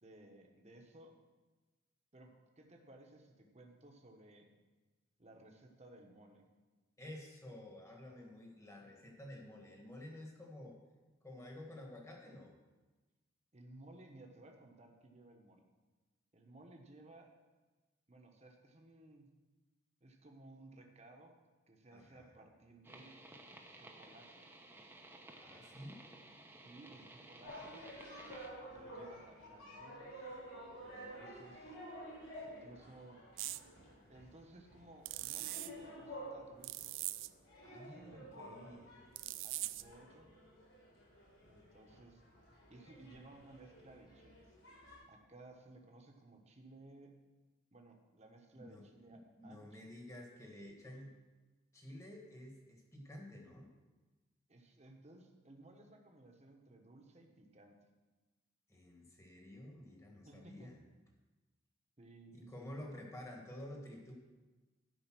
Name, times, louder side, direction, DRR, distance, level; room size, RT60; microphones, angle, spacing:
voice 1, 0.0-1.1 2.1-2.3 2.6-4.5 5.2-6.5 13.5-15.7 16.3-17.3 18.1-19.3 20.0-21.3 21.7-23.2 23.7-24.4 26.5-27.8 28.7-30.2 30.7-31.8 32.4-33.2 34.1-36.9 37.7-38.8 39.4-40.3 41.5-42.2 42.7-44.4 45.1-47.1 47.7-49.9 54.5-57.8 60.2-60.7 62.0-62.7, right 2 dB, 35° right, 2 dB, 1.2 m, -58 dB
voice 2, 7.0-10.8 11.2-12.5 21.9-22.3 22.9-23.0 25.4-26.0 37.6-39.0 48.6-51.1 51.7-53.7 58.7-60.8 62.3-64.1, left 1 dB, 15° left, 0 dB, 1.6 m, -51 dB
sound 1, 22.8-28.5, right 1 dB, 10° right, 0.8 m, -56 dB
sound 2, 27.4-45.0, equal, 85° left, 4.1 m, -52 dB
sound 3, 33.4-33.6 35.1-35.7 36.6-37.3 39.2-39.9, right 17 dB, 70° right, 0.4 m, -41 dB
12.5 x 5.4 x 6.1 m, 1.2 s
head